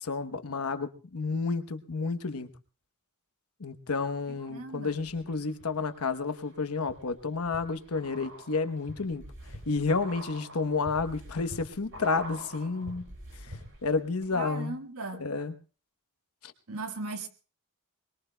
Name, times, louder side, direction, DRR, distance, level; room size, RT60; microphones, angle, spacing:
voice 1, 0.0-2.5 3.6-9.2 9.7-13.0 13.8-14.7 15.2-15.5 16.4-16.5, left 4 dB, 85° left, 1.0 m, -30 dB
voice 2, 4.5-5.0 14.3-15.3 16.7-17.3, right 3 dB, 80° right, 1.5 m, -37 dB
sound 1, 4.9-5.6 6.1-14.0 14.2-14.3, right 1 dB, 65° right, 5.0 m, -46 dB
23.5 x 21.0 x 2.2 m
head